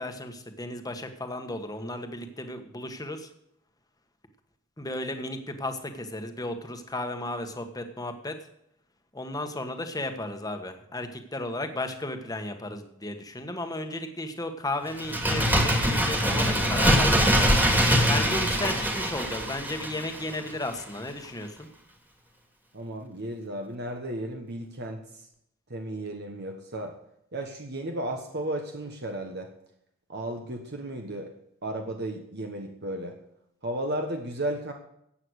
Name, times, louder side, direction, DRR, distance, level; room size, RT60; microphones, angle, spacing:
voice 1, 0.0-3.3 4.8-8.3 9.1-21.7, left 1 dB, 20° left, 6 dB, 1.4 m, -34 dB
Bird, 14.9-20.5 20.8-20.9, equal, 10° right, 1.7 m, -23 dB
voice 2, 22.7-25.0 25.7-26.9 27.3-29.5 30.1-31.3 31.6-33.2 33.6-34.7, right 1 dB, 50° right, 3 dB, 1.3 m, -34 dB
14.5 x 8.9 x 6.5 m, 0.76 s
head